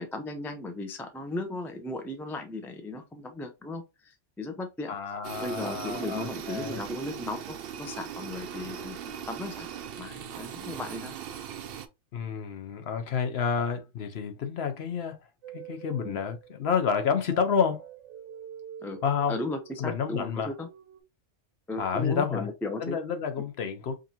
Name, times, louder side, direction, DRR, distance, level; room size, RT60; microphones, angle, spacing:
voice 1, 0.0-5.0 5.4-9.7 10.0-11.2 16.0-16.2 18.8-19.0 19.3-20.7 21.7-23.0, left 2 dB, 5° left, 0.3 m, -36 dB
voice 2, 4.9-6.8 12.1-15.2 15.5-17.8 19.0-19.4 19.8-20.5 21.8-22.5 22.8-23.9, left 6 dB, 60° left, 0.9 m, -29 dB
sound 1, 5.2-11.9, right 8 dB, 65° right, 0.7 m, -39 dB
sound 2, 15.4-21.0, right 9 dB, 85° right, 1.1 m, -46 dB
5.0 x 2.7 x 2.7 m
omnidirectional pair, 1.2 m